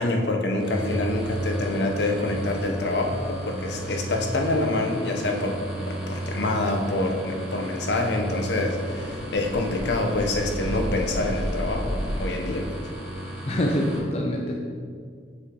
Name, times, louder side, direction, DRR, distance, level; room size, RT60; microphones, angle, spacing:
voice 1, 0.0-5.6 5.9-12.9, left 2 dB, 65° left, 2 dB, 0.8 m, -26 dB
sound 1, 0.6-14.0, right 1 dB, 5° right, 1.1 m, -34 dB
sound 2, 8.7-12.3, equal, 60° right, 1.0 m, -32 dB
voice 2, 13.5-14.6, equal, 35° left, -1 dB, 0.5 m, -25 dB
6.3 x 4.8 x 3.7 m, 2.1 s
head